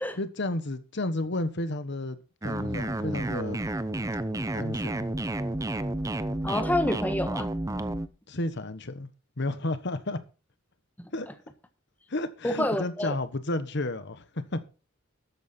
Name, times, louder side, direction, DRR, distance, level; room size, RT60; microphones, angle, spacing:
voice 1, 0.2-2.2 2.4-3.6 4.5-5.1 8.3-9.1 9.4-10.2 11.1-11.3 12.1-14.6, left 2 dB, 60° left, 1.2 m, -32 dB
sound 1, 2.4-8.1, right 1 dB, 15° right, 0.7 m, -31 dB
voice 2, 6.4-7.5 11.0-11.1 12.4-13.1, left 1 dB, 10° left, 1.2 m, -28 dB
13.0 x 8.9 x 4.4 m
head